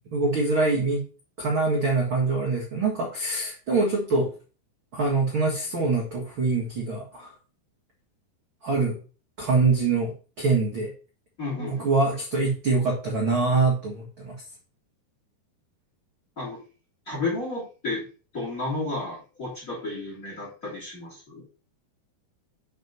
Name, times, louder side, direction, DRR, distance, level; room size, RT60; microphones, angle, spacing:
voice 1, 0.1-1.0 1.4-4.3 4.9-7.3 8.6-9.0 9.4-10.1 10.4-10.9 11.6-14.3, right 3 dB, 60° right, -2 dB, 1.3 m, -24 dB
voice 2, 11.4-11.9 16.4-16.6 17.1-18.0 18.3-21.4, left 2 dB, 20° left, -3 dB, 3.0 m, -32 dB
6.4 x 4.8 x 5.4 m, 0.36 s
omnidirectional pair, 4.8 m